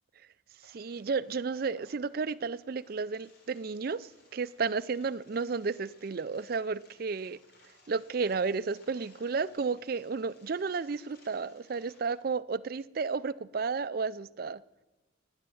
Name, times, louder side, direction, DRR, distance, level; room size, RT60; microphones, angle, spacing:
sound 1, 0.6-12.2, left 2 dB, 50° left, 3.5 m, -62 dB
voice 1, 0.7-7.4 7.9-14.6, right 4 dB, 50° right, 16 dB, 0.4 m, -32 dB
17.5 x 9.8 x 8.5 m, 1.1 s
head